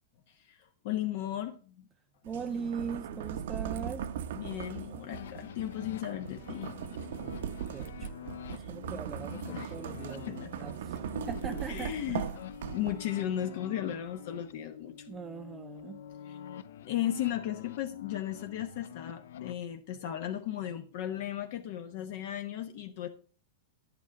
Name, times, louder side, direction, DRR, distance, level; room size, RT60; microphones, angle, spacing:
voice 1, 0.3-1.8 4.4-6.7 8.5-8.7 9.5-9.7 10.3-10.5 11.7-12.3 12.7-15.1 16.2-16.4 16.8-23.1, left 11 dB, 50° left, 0.9 m, -36 dB
voice 2, 2.2-4.1 7.7-8.1 8.5-12.3 15.1-16.0, right 6 dB, 15° right, 0.4 m, -40 dB
sound 1, 2.2-13.2, right 8 dB, 70° right, 0.8 m, -39 dB
sound 2, 5.1-19.6, left 10 dB, 75° left, 0.5 m, -46 dB
11.5 x 8.3 x 4.7 m
supercardioid pair, 170°, 0 cm